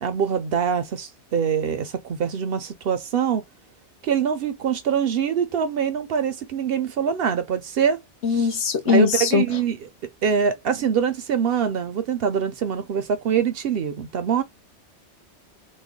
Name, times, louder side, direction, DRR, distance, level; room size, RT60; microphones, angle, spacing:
voice 1, 0.0-3.4 4.0-8.0 8.3-8.6 8.8-9.8 10.2-14.4, right 7 dB, 65° right, 0.7 m, -24 dB
voice 2, 8.2-9.4, left 5 dB, 75° left, 1.1 m, -20 dB
3.2 x 2.1 x 3.5 m
omnidirectional pair, 1.2 m